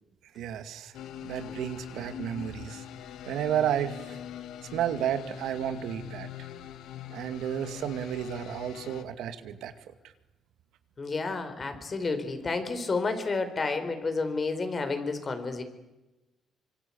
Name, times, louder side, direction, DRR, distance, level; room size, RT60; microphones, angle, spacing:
voice 1, 0.4-0.9 1.2-2.8 3.2-4.2 4.7-6.3 7.1-9.7, right 10 dB, 90° right, 9 dB, 2.2 m, -32 dB
sound 1, 0.9-9.0, left 10 dB, 85° left, 1.8 m, -43 dB
voice 2, 11.0-15.6, left 3 dB, 35° left, 8 dB, 4.5 m, -30 dB
26.0 x 24.5 x 8.7 m, 1.0 s
cardioid pair, 110°, 0 cm